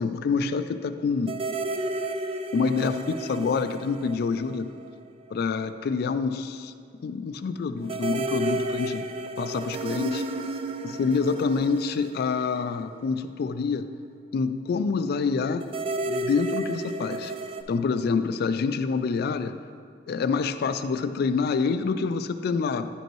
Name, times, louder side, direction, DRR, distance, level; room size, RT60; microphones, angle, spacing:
voice 1, 0.0-1.4 2.5-4.7 5.3-6.7 7.0-9.1 9.4-10.2 10.8-13.9 14.3-15.7 16.1-17.3 17.7-19.6 20.1-22.9, left 5 dB, 60° left, 11 dB, 0.3 m, -27 dB
sound 1, 1.3-5.0 5.3-5.4 7.9-13.3 15.6-17.6, right 2 dB, 30° right, 0.3 m, -32 dB
9.9 x 5.3 x 3.1 m, 2.2 s
head